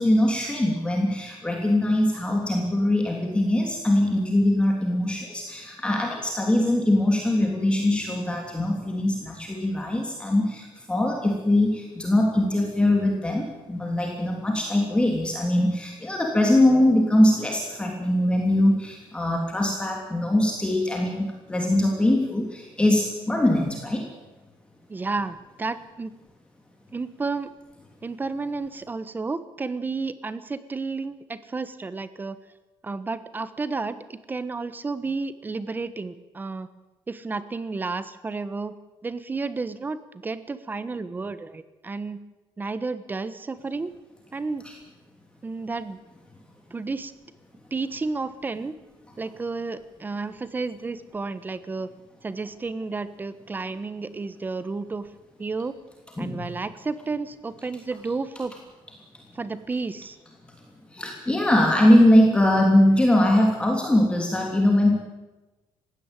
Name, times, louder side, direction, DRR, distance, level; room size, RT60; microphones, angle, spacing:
voice 1, 0.0-24.1 56.2-56.4 60.9-65.0, left 1 dB, 10° left, 1 dB, 3.1 m, -22 dB
voice 2, 24.9-26.1 26.9-27.5 28.0-32.4 32.8-36.7 37.1-38.8 39.0-42.2 42.6-43.9 44.3-44.6 45.4-46.0 46.7-47.1 47.7-48.8 49.2-51.9 52.2-55.1 55.4-55.7 56.2-58.5 59.3-60.2, right 3 dB, 20° right, 13 dB, 1.2 m, -31 dB
20.0 x 16.5 x 9.1 m, 1.1 s
cardioid pair, 145°, 10 cm